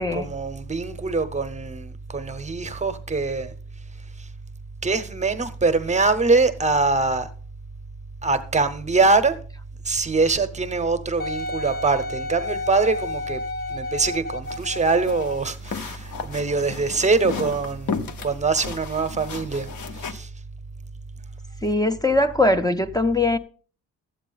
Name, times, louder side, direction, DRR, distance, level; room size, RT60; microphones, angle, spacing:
voice 1, 0.0-3.5 4.2-4.3 4.8-7.3 8.2-9.4 9.8-13.4 13.7-19.7 19.9-20.3, right 3 dB, 20° right, 0.7 m, -23 dB
Wind instrument woodwind instrument, 11.2-15.5 16.2-16.3, left 2 dB, 30° left, 0.8 m, -31 dB
sound 1, 14.4-20.1, left 5 dB, 70° left, 1.0 m, -35 dB
voice 2, 21.6-23.4, left 2 dB, 15° left, 0.4 m, -21 dB
12.5 x 8.3 x 3.9 m
wide cardioid pair, 155°, 31 cm